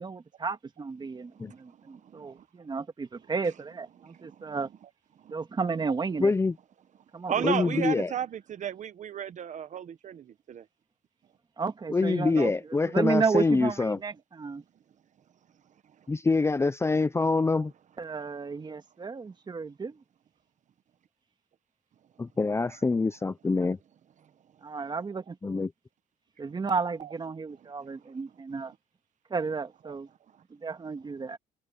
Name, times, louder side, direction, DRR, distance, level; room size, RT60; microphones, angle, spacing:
voice 1, 0.0-4.7 5.3-6.3 7.1-7.9 11.6-12.5 12.9-14.6 18.0-20.0 24.6-25.7 26.4-28.7 29.3-30.1 30.5-31.4, right 4 dB, 25° right, 1.9 m, -32 dB
voice 2, 1.3-2.4 4.0-4.5 5.2-5.3 7.3-10.7 12.3-12.5 27.0-27.1 29.8-29.9, right 9 dB, 45° right, 1.1 m, -35 dB
voice 3, 6.2-6.5 7.4-8.1 11.9-14.0 16.1-17.7 22.2-23.8 25.4-25.7, left 3 dB, 15° left, 0.6 m, -25 dB
cardioid pair, 110°, 17 cm